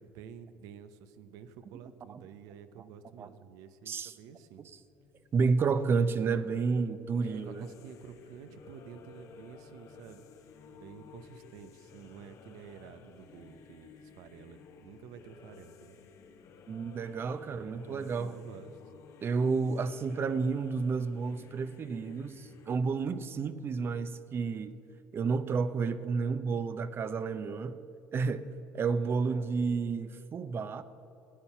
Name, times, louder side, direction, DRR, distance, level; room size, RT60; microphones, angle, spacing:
voice 1, 0.0-4.7 7.2-10.2 10.7-16.0 17.3-18.8 29.0-29.3, right 8 dB, 70° right, 0.8 m, -50 dB
sound 1, 4.7-22.8, left 6 dB, 55° left, 1.1 m, -54 dB
voice 2, 5.3-7.7 16.7-18.4 19.2-24.8 25.1-27.8 28.1-28.5 28.7-30.8, right 5 dB, 40° right, 0.7 m, -31 dB
13.5 x 9.7 x 5.8 m
supercardioid pair, 80°, 6 cm